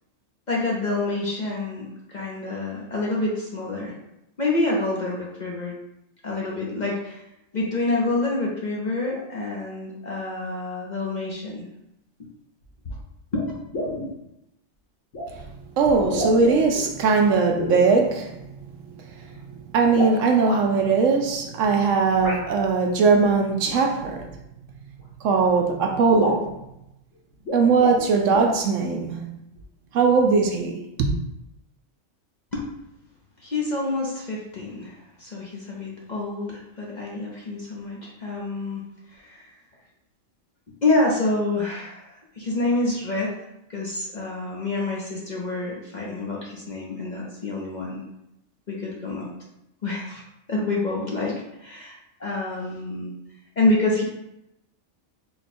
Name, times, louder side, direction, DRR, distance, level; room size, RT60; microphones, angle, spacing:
voice 1, 0.5-3.9 4.4-5.7 6.2-7.2 7.5-11.7 12.9-13.0 13.3-13.5 32.5-32.6 33.4-38.8 39.1-39.5 40.8-43.3 43.7-48.0 48.7-49.3 49.8-50.2 50.5-53.1 53.6-54.0, left 2 dB, 40° left, 0.7 m, -27 dB
sound 1, 12.6-12.7 13.3-13.4 13.7-14.1 15.1-15.3 15.9-16.8 17.5-17.9 19.8-20.6 22.2-22.4 23.6-23.8 25.0-25.1 25.4-25.5 25.8-25.9 26.1-26.5 27.3-28.1 28.3-28.6, left 1 dB, 70° left, 1.7 m, -29 dB
voice 2, 15.8-18.3 19.7-24.3 25.2-26.5 27.5-29.4 29.9-31.1, right 4 dB, 70° right, 0.9 m, -20 dB
4.2 x 2.2 x 4.2 m
omnidirectional pair, 1.4 m